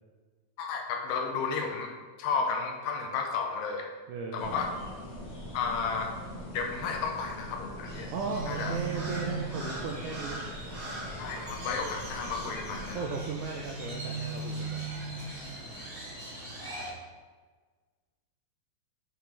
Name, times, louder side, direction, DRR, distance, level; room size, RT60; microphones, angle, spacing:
voice 1, 0.6-1.9 2.2-3.9 4.3-4.7 5.5-6.1 6.5-8.1 8.5-8.8 11.2-13.2, left 5 dB, 80° left, 3 dB, 2.2 m, -32 dB
voice 2, 4.1-4.6 8.1-10.5 12.9-14.9, right 5 dB, 80° right, 1 dB, 1.8 m, -36 dB
sound 1, 4.4-12.9, equal, 50° left, 1.4 m, -42 dB
Crow, 7.8-16.9, right 3 dB, 35° right, 1.4 m, -39 dB
7.3 x 5.6 x 3.3 m, 1.4 s
omnidirectional pair, 4.1 m